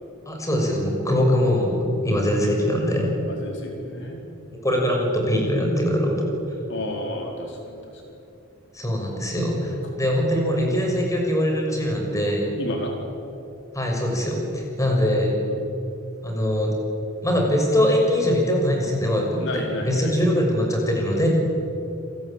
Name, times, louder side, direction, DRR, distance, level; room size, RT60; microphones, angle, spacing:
voice 1, 0.3-3.1 4.6-6.3 8.7-12.5 13.7-15.3 16.2-16.7 17.2-21.3, equal, 15° left, 0 dB, 6.4 m, -22 dB
voice 2, 3.3-4.2 6.7-7.9 10.6-10.9 12.6-12.9 15.5-15.6 19.4-20.2, left 1 dB, 60° left, 1 dB, 4.3 m, -32 dB
29.0 x 21.5 x 9.0 m, 2.7 s
head